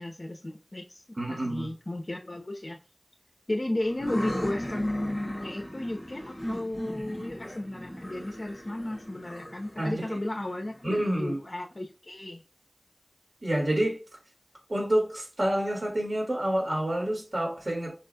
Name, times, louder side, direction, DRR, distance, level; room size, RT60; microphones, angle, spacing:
voice 1, 0.0-1.0 1.3-2.8 3.5-12.4, left 1 dB, 60° left, 0.8 m, -34 dB
voice 2, 1.2-1.7 9.8-10.2 10.8-11.4 13.4-14.0 14.7-17.9, right 1 dB, 65° right, 2.2 m, -28 dB
sound 1, 3.8-11.4, equal, 30° left, 2.1 m, -38 dB
5.6 x 4.1 x 2.3 m
wide cardioid pair, 40°, 0 cm